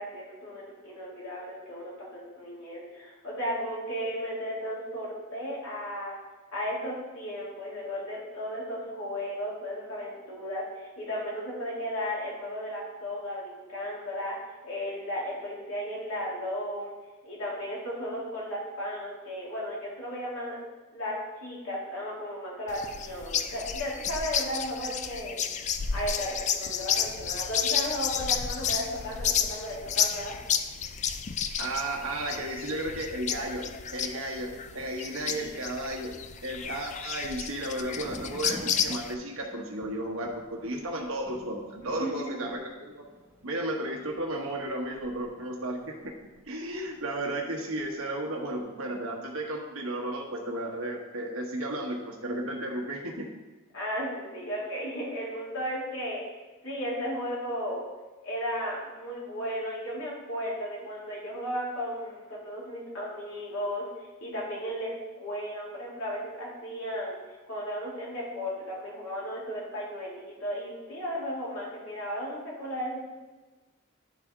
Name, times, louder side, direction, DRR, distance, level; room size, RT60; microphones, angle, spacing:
voice 1, 0.0-6.1 6.5-14.4 14.6-16.9 17.2-20.6 20.9-25.4 25.9-30.3 35.2-35.7 41.8-42.5 53.7-56.2 56.6-57.8 58.2-73.0, equal, 70° left, -6 dB, 2.3 m, -35 dB
sound 1, 22.7-39.1, left 8 dB, 35° left, 0.3 m, -31 dB
voice 2, 31.6-36.1 36.4-43.0 43.4-46.1 46.5-53.3, right 1 dB, 75° right, 0 dB, 1.3 m, -34 dB
Thunder, 37.8-47.4 47.7-48.4, equal, 10° right, 0.8 m, -49 dB
10.5 x 4.2 x 3.7 m, 1.2 s
head